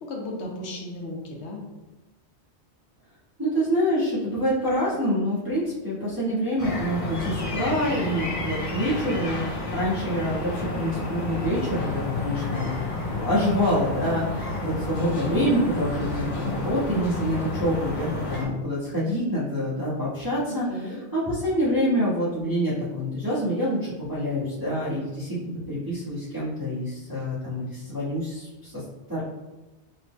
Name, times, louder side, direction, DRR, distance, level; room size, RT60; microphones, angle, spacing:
voice 1, 0.0-1.6 20.4-21.0, left 1 dB, 75° left, -1 dB, 1.0 m, -35 dB
voice 2, 3.4-12.7 13.2-28.8 29.1-29.2, equal, 20° right, -13 dB, 1.5 m, -26 dB
sound 1, 6.6-18.5, left 2 dB, 35° left, 0.6 m, -30 dB
4.0 x 3.9 x 2.2 m, 1.1 s
omnidirectional pair, 1.2 m